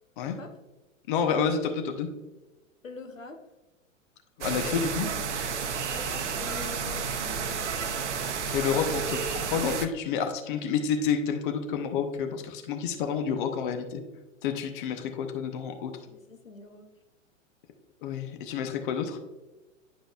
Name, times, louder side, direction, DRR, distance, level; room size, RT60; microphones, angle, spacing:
voice 1, 1.1-2.1 4.4-5.1 8.5-14.0 14.4-15.9 18.0-19.2, left 6 dB, 40° left, 6 dB, 0.8 m, -29 dB
voice 2, 2.8-3.4 5.9-8.0 16.1-16.9, left 4 dB, 80° left, 5 dB, 1.0 m, -45 dB
sound 1, 4.4-9.9, right 6 dB, 60° right, 0.7 m, -31 dB
10.0 x 5.0 x 2.4 m, 1.1 s
figure-of-eight pair, 100°, 39 cm